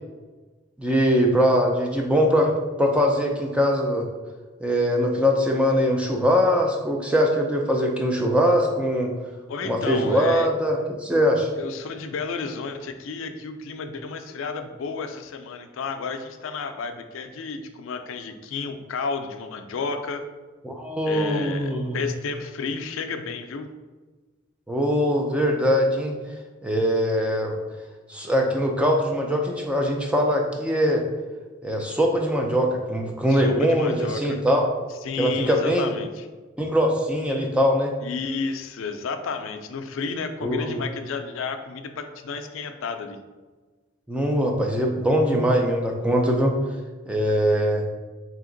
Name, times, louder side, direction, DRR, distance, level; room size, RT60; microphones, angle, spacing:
voice 1, 0.8-2.5 2.8-4.1 4.6-9.1 9.6-11.5 20.6-22.0 24.7-26.1 26.6-27.6 28.1-31.0 31.6-34.7 35.2-35.9 36.6-37.9 40.4-40.8 44.1-46.5 47.1-47.8, equal, 5° right, 1 dB, 0.3 m, -22 dB
voice 2, 9.5-10.5 11.6-20.2 21.0-23.7 33.3-34.4 35.0-36.3 38.0-43.2, left 4 dB, 85° left, 7 dB, 0.4 m, -32 dB
3.4 x 2.8 x 3.8 m, 1.3 s
head